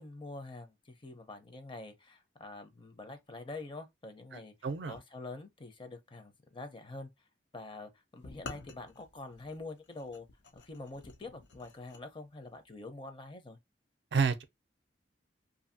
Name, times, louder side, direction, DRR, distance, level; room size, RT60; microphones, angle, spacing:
voice 1, 0.0-4.5 4.9-7.1 7.5-10.3 10.5-13.6, left 2 dB, 30° left, 0.6 m, -46 dB
voice 2, 4.3-5.0 14.1-14.4, right 5 dB, 70° right, 0.4 m, -31 dB
stone on stone, 8.2-12.0, left 3 dB, 80° left, 0.6 m, -50 dB
2.7 x 2.6 x 2.6 m
head